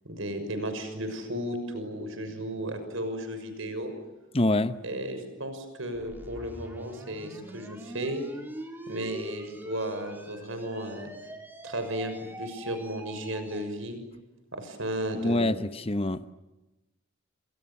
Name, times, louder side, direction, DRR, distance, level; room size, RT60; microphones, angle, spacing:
voice 1, 0.0-3.9 4.8-8.2 8.9-11.1 11.6-14.0 14.5-15.6, right 1 dB, 65° right, 6.4 m, -34 dB
voice 2, 4.3-4.8 15.1-16.3, left 1 dB, 25° left, 0.9 m, -26 dB
sound 1, 5.9-13.7, equal, 10° right, 3.6 m, -43 dB
30.0 x 27.0 x 7.3 m
head